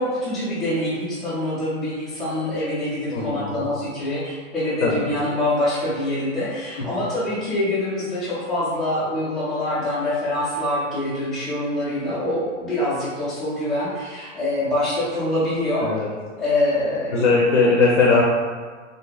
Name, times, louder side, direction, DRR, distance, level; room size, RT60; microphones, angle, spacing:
voice 1, 0.0-15.9 16.4-17.3, left 1 dB, ahead, -16 dB, 0.5 m, -25 dB
voice 2, 3.1-3.6 4.8-5.1 6.8-6.9 15.8-16.1 17.1-18.2, left 4 dB, 65° left, -3 dB, 0.6 m, -19 dB
2.7 x 2.4 x 2.3 m, 1.5 s
hypercardioid pair, 140°, 38 cm